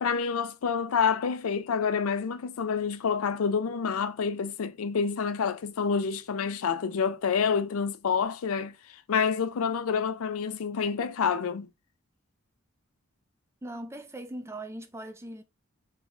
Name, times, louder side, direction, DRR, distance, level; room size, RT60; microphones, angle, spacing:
voice 1, 0.0-8.7 9.1-11.7, left 6 dB, 85° left, 0.5 m, -28 dB
voice 2, 13.6-15.4, right 1 dB, 15° right, 0.5 m, -40 dB
3.1 x 2.5 x 3.5 m
head